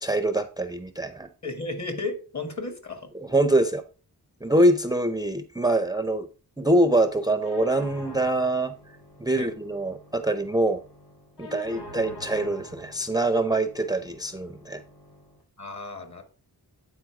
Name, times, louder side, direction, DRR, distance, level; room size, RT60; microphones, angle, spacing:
voice 1, 0.0-1.3 3.1-3.8 4.4-6.3 6.6-8.7 9.2-10.8 11.4-14.8, right 1 dB, 10° right, 0.5 m, -24 dB
voice 2, 1.4-3.1 9.4-9.5 15.6-16.2, left 3 dB, 45° left, 2.0 m, -34 dB
sound 1, 7.4-15.4, left 1 dB, 70° left, 3.3 m, -46 dB
9.0 x 4.3 x 4.7 m
wide cardioid pair, 80°, 39 cm